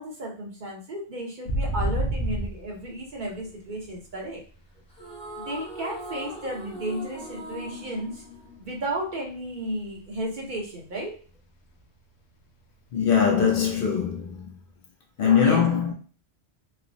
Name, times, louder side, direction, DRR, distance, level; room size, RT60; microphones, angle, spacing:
voice 1, 0.0-4.4 5.4-8.2 8.6-11.2 15.4-15.6, right 1 dB, 55° right, 0.7 m, -33 dB
sound 1, 1.5-4.8 5.1-7.4 7.7-8.0 8.3-10.2 10.6-10.7 11.0-11.4 11.7-11.8 14.0-14.1, right 1 dB, 90° left, 0.9 m, -31 dB
sound 2, 4.9-9.3, equal, 10° left, 0.4 m, -40 dB
voice 2, 12.9-14.6 15.2-15.9, left 7 dB, 65° left, 0.7 m, -22 dB
3.1 x 2.1 x 2.5 m
omnidirectional pair, 1.1 m